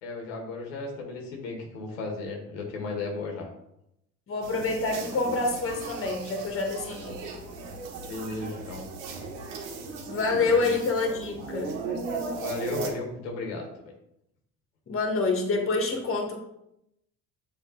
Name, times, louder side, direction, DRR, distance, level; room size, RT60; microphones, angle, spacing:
voice 1, 0.0-3.5 8.0-8.9 10.5-10.7 12.3-13.7, left 3 dB, 85° left, 1 dB, 1.4 m, -34 dB
voice 2, 4.3-7.2 10.1-11.7 14.9-16.5, left 3 dB, 35° left, 3 dB, 1.6 m, -27 dB
sound 1, 4.4-12.9, right 4 dB, 75° right, 1.4 m, -37 dB
7.4 x 3.4 x 3.9 m, 0.81 s
hypercardioid pair, 70°, 37 cm